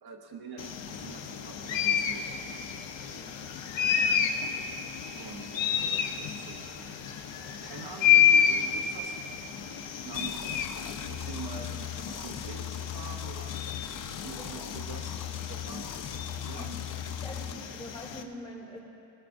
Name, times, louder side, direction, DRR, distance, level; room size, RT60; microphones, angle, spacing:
voice 1, 0.0-2.3 4.9-6.9 7.3-9.1 9.9-10.6 11.1-13.6 13.9-15.2 15.5-16.0 16.5-16.7, right 5 dB, 55° right, 3 dB, 0.9 m, -45 dB
sound 1, 0.6-18.2, left 8 dB, 70° left, 0.9 m, -30 dB
voice 2, 3.7-4.3 14.3-14.7 16.6-16.7 17.2-18.8, left 1 dB, 10° left, -3 dB, 2.5 m, -45 dB
sound 2, 10.1-17.5, left 9 dB, 45° left, 0.5 m, -39 dB
21.0 x 18.0 x 2.6 m, 2.7 s
cardioid pair, 135°, 47 cm